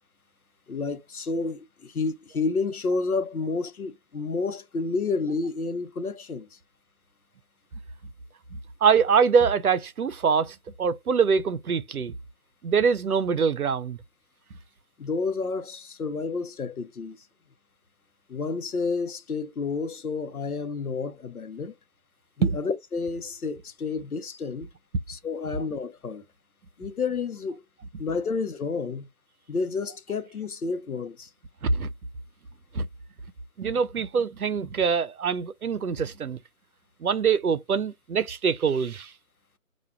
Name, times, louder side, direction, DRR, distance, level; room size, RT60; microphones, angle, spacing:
voice 1, 0.7-6.6 15.0-17.2 18.3-21.8 22.4-24.7 25.1-26.2 26.8-27.6 28.0-29.1 29.5-31.3, left 4 dB, 85° left, 0.8 m, -30 dB
voice 2, 8.5-12.1 12.6-14.0 22.4-22.5 31.6-31.9 32.7-32.9 33.6-36.4 37.0-39.1, right 6 dB, 90° right, 0.6 m, -24 dB
5.7 x 2.4 x 2.2 m
figure-of-eight pair, 150°, 43 cm